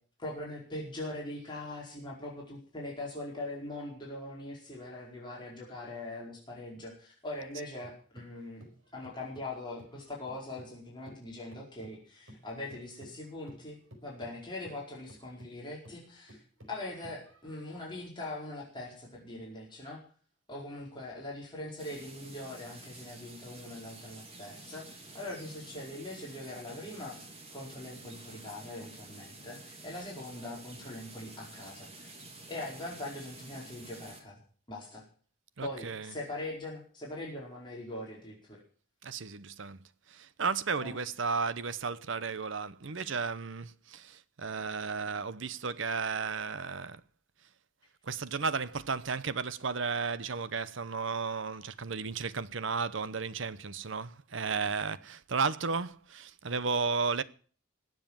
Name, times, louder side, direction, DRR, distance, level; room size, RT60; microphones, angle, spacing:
voice 1, 0.2-8.7 8.9-13.7 14.0-16.4 16.7-20.0 20.5-27.2 27.5-32.1 32.5-34.4 34.7-35.0 35.6-38.6 40.8-41.0, left 2 dB, 20° left, 4.9 m, -42 dB
sound 1, 7.4-10.8 11.1-17.7, equal, 85° right, 4.8 m, -54 dB
sound 2, 21.8-34.2, right 2 dB, 30° right, 2.8 m, -50 dB
voice 2, 35.6-36.2 39.0-39.8 40.1-47.0 48.0-57.2, right 5 dB, 65° right, 0.8 m, -34 dB
20.0 x 7.6 x 7.3 m
head